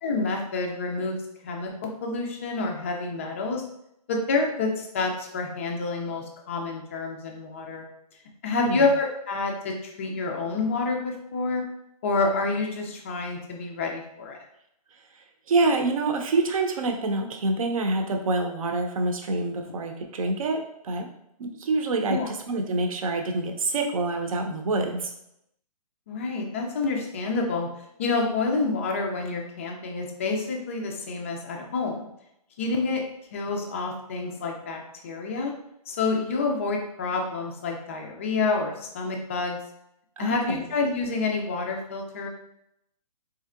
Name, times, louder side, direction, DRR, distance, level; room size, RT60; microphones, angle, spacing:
voice 1, 0.0-1.2 1.4-3.6 4.1-7.9 8.4-11.7 12.0-14.4 22.1-22.3 26.1-27.7 28.0-32.1 32.6-33.0 33.3-35.5 35.9-39.6 40.2-42.3, left 3 dB, 20° left, 1 dB, 0.3 m, -28 dB
voice 2, 15.5-21.1 21.4-25.1 40.2-40.6, right 3 dB, 60° right, 4 dB, 0.7 m, -26 dB
4.2 x 2.8 x 2.4 m, 0.79 s
hypercardioid pair, 165°, 20 cm